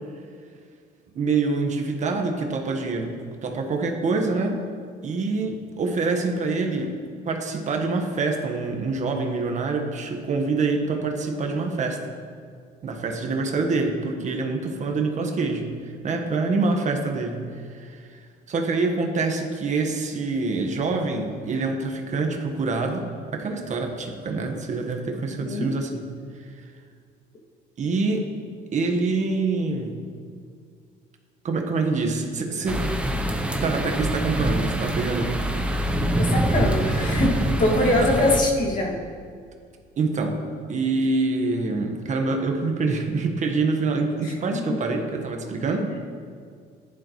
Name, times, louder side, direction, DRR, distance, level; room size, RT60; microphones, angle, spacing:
voice 1, 1.1-3.1 3.4-4.6 5.0-6.9 7.2-12.0 12.8-26.1 26.4-26.7 27.8-28.3 28.7-30.0 31.4-32.9 33.6-35.4 38.0-38.1 40.0-40.4 40.7-45.9, right 3 dB, 45° right, 3 dB, 1.5 m, -26 dB
voice 2, 25.4-25.7 36.2-39.0 44.2-44.6, left 1 dB, 50° left, -2 dB, 2.4 m, -23 dB
sound 1, 32.7-38.4, right 1 dB, 5° right, 0.9 m, -25 dB
14.5 x 11.0 x 3.2 m, 2.1 s
cardioid pair, 110°, 17 cm